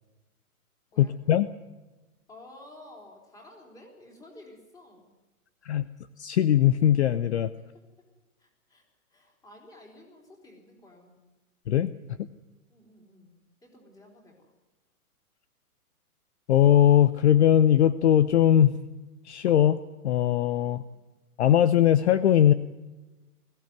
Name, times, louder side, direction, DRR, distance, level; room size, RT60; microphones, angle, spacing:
voice 1, 1.0-1.5 5.6-5.8 6.2-7.5 11.7-11.9 16.5-18.8 19.2-19.8 20.0-20.8 21.4-22.5, left 10 dB, 50° left, 14 dB, 0.8 m, -20 dB
voice 2, 2.3-5.1 5.6-5.7 8.4-8.8 9.1-11.2 12.7-14.5 20.6-20.8, left 1 dB, 10° left, 0 dB, 3.7 m, -52 dB
21.0 x 15.5 x 9.4 m, 1.1 s
hypercardioid pair, 155°, 44 cm